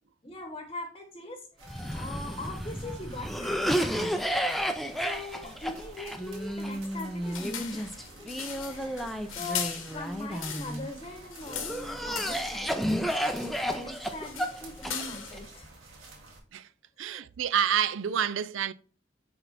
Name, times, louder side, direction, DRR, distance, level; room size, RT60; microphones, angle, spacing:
voice 1, 0.2-1.5 1.9-4.3 5.0-8.0 8.6-12.7 13.6-15.9 17.0-17.2, left 2 dB, 25° left, 1.0 m, -41 dB
sound 1, 1.6-16.4, right 2 dB, 90° right, 2.0 m, -51 dB
Cough, 1.7-10.9 11.5-15.4, equal, ahead, 0.5 m, -32 dB
sound 2, 7.2-10.9 11.2-12.7 13.1-13.7 14.0-15.5, left 8 dB, 85° left, 1.4 m, -39 dB
voice 2, 17.0-18.7, right 8 dB, 75° right, 0.4 m, -28 dB
9.8 x 3.4 x 4.1 m
head